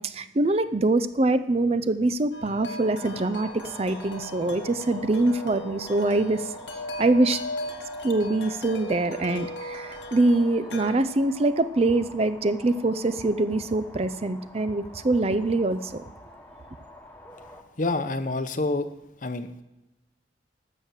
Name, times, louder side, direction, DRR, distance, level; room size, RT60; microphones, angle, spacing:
voice 1, 0.0-6.5 7.0-7.4 8.0-16.0, right 2 dB, 35° right, 13 dB, 0.5 m, -24 dB
Wind chime, 2.3-11.0, left 1 dB, 90° left, 1.3 m, -38 dB
sound 1, 2.8-17.6, left 1 dB, 10° left, 1.3 m, -46 dB
voice 2, 17.8-18.9 19.2-19.6, left 2 dB, 45° left, 11 dB, 0.8 m, -27 dB
12.5 x 6.6 x 7.4 m, 1.0 s
head